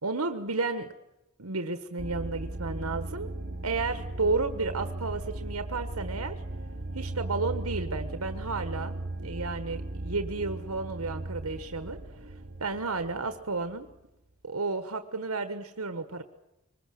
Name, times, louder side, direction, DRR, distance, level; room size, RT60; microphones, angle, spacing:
voice 1, 0.0-0.9 1.4-3.3 3.6-6.3 6.9-12.0 12.6-13.9 14.4-16.2, right 3 dB, 85° right, 8 dB, 1.4 m, -32 dB
sound 1, 2.0-13.9, right 2 dB, 45° right, 1.2 m, -37 dB
24.0 x 20.5 x 7.7 m, 0.94 s
head